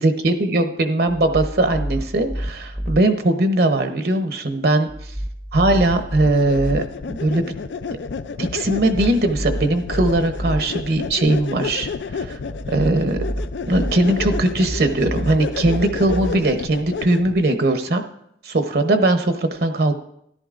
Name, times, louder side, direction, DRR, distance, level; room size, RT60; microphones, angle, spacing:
voice 1, 0.0-4.9 5.5-7.5 8.4-11.9 12.3-12.4 12.7-13.2 13.7-18.0 18.4-20.0, right 2 dB, 60° right, 7 dB, 0.9 m, -20 dB
sound 1, 1.1-3.0 4.9-6.8 8.7-10.6 12.5-16.3, equal, ahead, 0.6 m, -29 dB
sound 2, 5.8-17.5, left 5 dB, 85° left, 0.4 m, -31 dB
13.5 x 11.5 x 2.5 m, 0.73 s
head